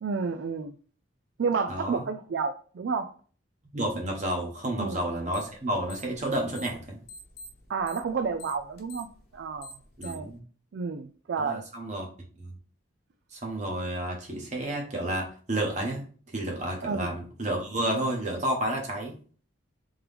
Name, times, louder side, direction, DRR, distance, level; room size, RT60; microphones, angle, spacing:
voice 1, 0.0-0.7 1.4-3.1 4.8-5.3 7.7-9.1 9.3-9.7 10.0-10.3 10.7-11.6 16.8-17.1, right 5 dB, 60° right, 7 dB, 0.3 m, -30 dB
voice 2, 1.7-2.0 3.7-7.0 10.0-10.4 11.4-12.1 12.4-12.5 13.3-16.1 16.3-19.1, right 1 dB, 35° right, 1 dB, 1.0 m, -31 dB
sound 1, 5.3-5.6 5.8-6.8 7.1-10.3, left 2 dB, 50° left, 1.2 m, -45 dB
3.7 x 3.0 x 3.4 m, 0.41 s
head